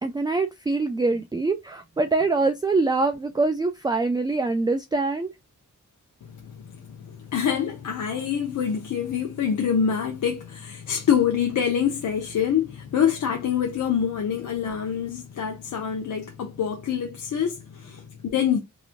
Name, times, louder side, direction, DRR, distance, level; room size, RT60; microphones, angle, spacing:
voice 1, 0.0-5.3, right 3 dB, 15° right, 0.3 m, -24 dB
voice 2, 6.2-18.6, left 8 dB, 70° left, 0.6 m, -26 dB
2.9 x 2.4 x 2.5 m
cardioid pair, 80°, 32 cm